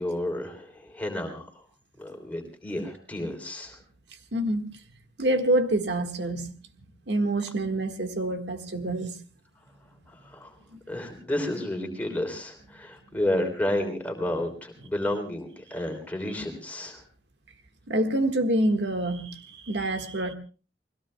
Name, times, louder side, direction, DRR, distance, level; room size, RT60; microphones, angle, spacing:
voice 1, 0.0-1.5 2.0-3.8 10.3-10.5 10.9-17.0, left 1 dB, 10° left, 3.3 m, -31 dB
voice 2, 4.3-4.7 5.2-6.5 7.1-9.2 10.7-10.8 17.9-20.3, right 1 dB, 85° right, 1.6 m, -26 dB
30.0 x 21.0 x 2.3 m
head